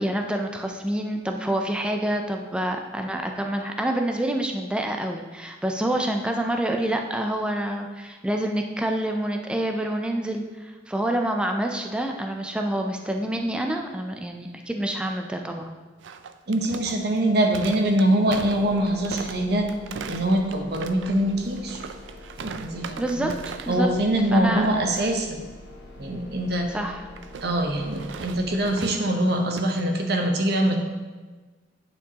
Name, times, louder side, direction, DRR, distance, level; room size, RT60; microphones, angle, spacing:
voice 1, 0.0-15.7 23.0-23.9 24.3-24.7 26.7-27.0, right 1 dB, 5° right, 3 dB, 0.4 m, -27 dB
sound 1, 16.0-23.9 24.1-24.4 24.7-25.1 27.2-29.8, right 6 dB, 75° right, 0.4 m, -39 dB
voice 2, 16.5-19.7 20.1-21.8 22.4-23.3 23.7-25.4 26.0-26.7 27.4-30.7, right 1 dB, 55° right, 3 dB, 0.8 m, -23 dB
sound 2, 18.3-28.7, left 2 dB, 70° left, 1.6 m, -45 dB
10.0 x 4.5 x 2.8 m, 1.3 s
head